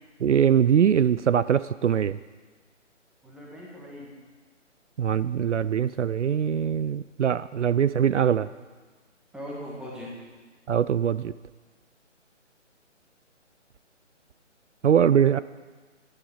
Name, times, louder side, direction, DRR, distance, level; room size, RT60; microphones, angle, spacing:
voice 1, 0.2-2.2 5.0-8.5 10.7-11.3 14.8-15.4, right 8 dB, 70° right, 15 dB, 0.5 m, -22 dB
voice 2, 3.2-4.1 9.3-10.1, equal, ahead, -4 dB, 1.6 m, -39 dB
11.0 x 11.0 x 7.2 m, 1.4 s
figure-of-eight pair, 150°, 37 cm